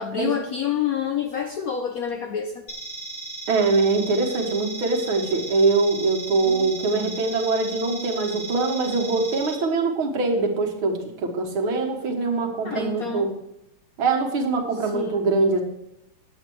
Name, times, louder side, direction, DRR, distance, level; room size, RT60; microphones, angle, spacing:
voice 1, 0.0-2.6 6.4-7.2 12.6-13.3 14.8-15.3, left 8 dB, 65° left, 4 dB, 0.9 m, -29 dB
sound 1, 2.7-9.5, right 3 dB, 35° left, 2.3 m, -36 dB
voice 2, 3.5-13.3 14.0-15.6, right 3 dB, 80° right, 2 dB, 2.3 m, -23 dB
9.8 x 8.1 x 4.6 m, 0.86 s
omnidirectional pair, 2.3 m